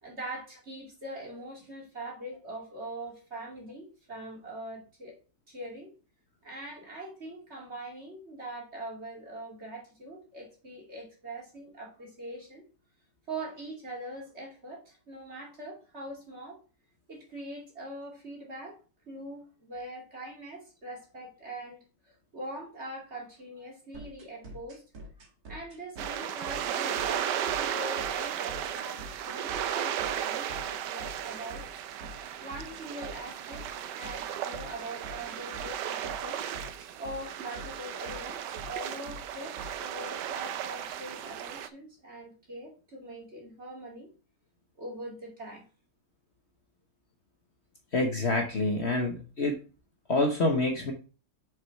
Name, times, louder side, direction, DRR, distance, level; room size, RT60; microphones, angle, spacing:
voice 1, 0.0-5.1 5.5-5.9 6.4-12.7 13.3-16.6 17.1-18.8 19.1-21.8 22.1-24.8 25.5-31.6 32.4-36.4 37.0-44.1 44.8-45.6, right 1 dB, 40° right, -3 dB, 2.9 m, -42 dB
sound 1, 23.9-39.9, equal, 60° right, 2.0 m, -45 dB
sound 2, 26.0-41.7, right 10 dB, 90° right, 1.3 m, -35 dB
voice 2, 47.9-49.6 50.1-50.9, left 2 dB, 45° left, 2 dB, 1.3 m, -27 dB
6.3 x 5.5 x 4.6 m, 0.35 s
omnidirectional pair, 1.8 m